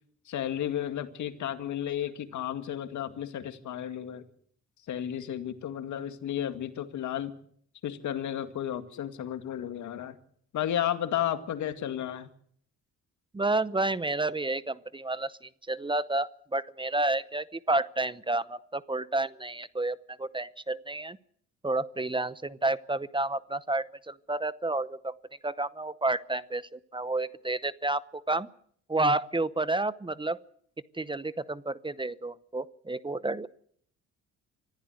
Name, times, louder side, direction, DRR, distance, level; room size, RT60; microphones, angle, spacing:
voice 1, 0.3-4.2 4.9-7.3 7.8-10.2 10.5-12.3, left 10 dB, 75° left, 9 dB, 2.1 m, -33 dB
voice 2, 13.3-21.2 21.6-25.1 25.4-28.5 28.9-30.4 30.9-33.5, right 2 dB, 15° right, 16 dB, 0.8 m, -30 dB
25.0 x 15.0 x 8.0 m, 0.62 s
cardioid pair, 90°, 30 cm